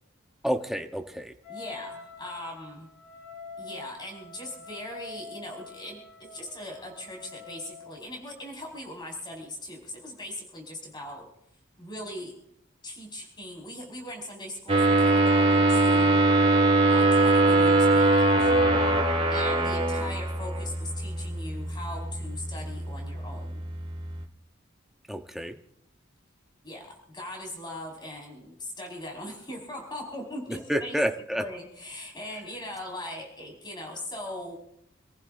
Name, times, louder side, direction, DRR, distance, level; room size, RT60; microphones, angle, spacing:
voice 1, 0.4-1.3 25.1-25.6 30.5-31.4, equal, ahead, 5 dB, 0.9 m, -29 dB
Wind instrument woodwind instrument, 1.4-8.0, left 4 dB, 70° left, 7.5 m, -45 dB
voice 2, 1.5-2.9 3.6-11.3 11.8-12.3 12.8-16.3 16.9-18.5 19.3-23.6 26.6-31.0 31.3-34.6, left 1 dB, 25° left, 0 dB, 5.0 m, -40 dB
sound 1, 14.7-24.2, right 2 dB, 30° right, 2.0 m, -23 dB
28.0 x 15.0 x 2.6 m, 0.76 s
head